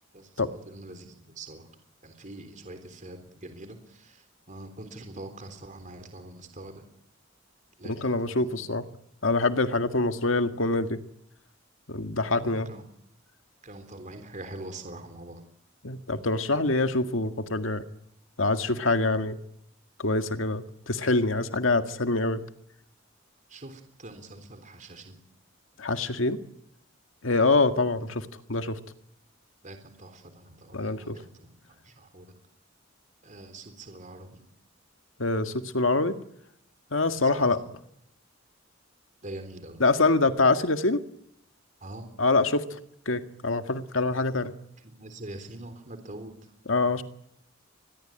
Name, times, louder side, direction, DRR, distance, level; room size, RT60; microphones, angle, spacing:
voice 1, 0.1-1.7 2.0-6.9 7.8-8.7 12.4-12.9 13.6-15.4 23.5-25.2 27.3-27.5 29.6-32.3 33.2-34.4 37.1-37.5 39.2-39.8 41.8-42.1 44.8-46.3, right 2 dB, 40° right, 7 dB, 3.6 m, -44 dB
voice 2, 7.8-8.8 9.2-11.0 11.9-12.7 15.8-17.8 18.4-19.4 20.0-22.4 25.8-26.4 27.2-28.8 30.7-31.2 35.2-36.2 36.9-37.6 39.8-41.0 42.2-42.8 43.1-44.5 46.7-47.0, left 3 dB, 80° left, 8 dB, 1.9 m, -25 dB
26.0 x 21.5 x 8.9 m, 0.74 s
head